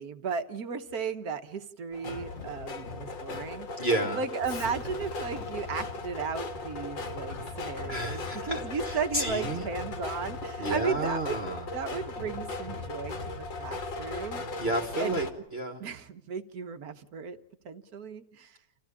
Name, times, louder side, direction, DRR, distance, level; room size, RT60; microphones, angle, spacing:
voice 1, 0.0-3.7 4.1-14.4 15.0-15.2 15.8-17.4 17.6-18.6, right 5 dB, 55° right, 10 dB, 1.6 m, -35 dB
sound 1, 1.9-15.3, left 3 dB, 80° left, 2.9 m, -38 dB
voice 2, 3.8-4.2 7.9-9.7 10.6-11.7 14.6-15.8, right 1 dB, 35° right, 3 dB, 1.8 m, -31 dB
Explosion, 4.4-9.6, left 4 dB, 65° left, 2.2 m, -50 dB
sound 2, 4.4-14.4, left 4 dB, 35° left, 1.2 m, -45 dB
28.0 x 15.5 x 8.5 m, 0.85 s
omnidirectional pair, 1.9 m